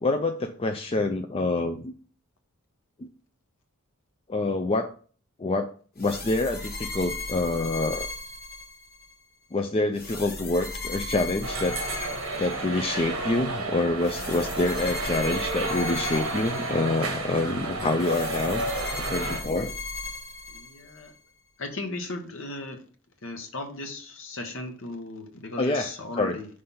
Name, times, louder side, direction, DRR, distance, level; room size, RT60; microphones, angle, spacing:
voice 1, 0.0-1.9 3.0-3.1 4.3-4.9 5.4-5.7 6.0-8.1 9.5-11.8 12.4-18.6 19.0-19.7 25.6-25.9 26.2-26.4, left 2 dB, 25° left, 6 dB, 0.3 m, -26 dB
sound 1, 6.0-9.1 10.0-13.1 14.0-17.2 18.0-21.1, left 2 dB, 45° left, 1.6 m, -37 dB
sound 2, 11.4-19.4, right 2 dB, 65° right, 1.2 m, -31 dB
voice 2, 20.5-21.1 21.6-22.8 23.2-26.5, left 2 dB, 60° left, 5 dB, 1.0 m, -36 dB
5.6 x 3.3 x 5.4 m, 0.42 s
head